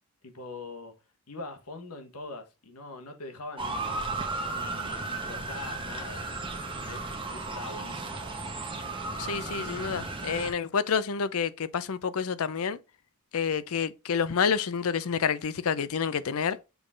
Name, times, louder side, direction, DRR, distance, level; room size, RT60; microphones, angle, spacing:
voice 1, 0.2-0.9 1.3-4.0 4.5-6.2 6.7-8.2 9.1-9.5, left 3 dB, 85° left, 1.5 m, -43 dB
Motor vehicle (road) / Siren, 3.6-10.5, right 3 dB, 25° right, 1.2 m, -35 dB
voice 2, 9.2-12.8 13.3-16.6, left 6 dB, 70° left, 0.5 m, -28 dB
6.9 x 3.8 x 3.8 m
head